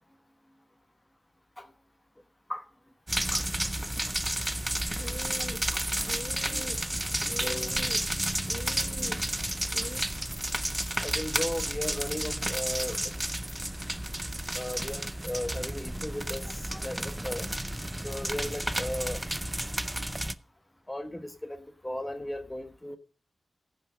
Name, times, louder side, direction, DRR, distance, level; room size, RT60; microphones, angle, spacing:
sound 1, 3.1-20.3, right 1 dB, 10° right, 0.5 m, -32 dB
sound 2, 5.0-10.0, left 3 dB, 45° left, 0.9 m, -44 dB
voice 1, 6.4-6.8 7.4-7.7 11.0-13.1 14.5-17.5 17.9-19.2 20.9-23.0, left 1 dB, 15° left, 1.2 m, -36 dB
16.0 x 5.5 x 4.9 m
wide cardioid pair, 75°, 0 cm